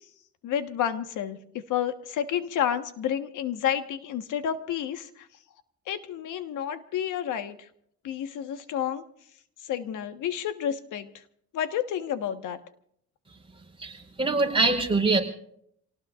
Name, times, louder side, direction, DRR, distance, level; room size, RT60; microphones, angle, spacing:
voice 1, 0.4-1.4 1.7-5.3 5.9-7.6 8.0-9.0 9.7-11.1 11.5-12.6, left 9 dB, 85° left, 9 dB, 1.4 m, -30 dB
voice 2, 13.8-15.2, right 3 dB, 15° right, 0 dB, 4.7 m, -24 dB
27.5 x 18.5 x 2.5 m, 0.70 s
cardioid pair, 90°, 30 cm